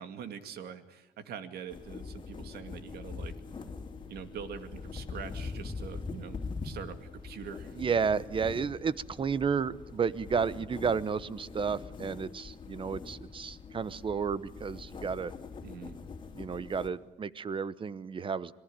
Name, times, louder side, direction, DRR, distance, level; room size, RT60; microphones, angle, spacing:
voice 1, 0.0-3.3 4.1-7.8 15.6-16.0, right 7 dB, 70° right, 10 dB, 2.3 m, -44 dB
sound 1, 1.7-16.9, left 4 dB, 25° left, 2.9 m, -43 dB
voice 2, 7.8-15.3 16.3-18.5, right 6 dB, 30° right, 18 dB, 0.9 m, -32 dB
26.5 x 19.5 x 8.9 m, 0.93 s
cardioid pair, 110°, 17 cm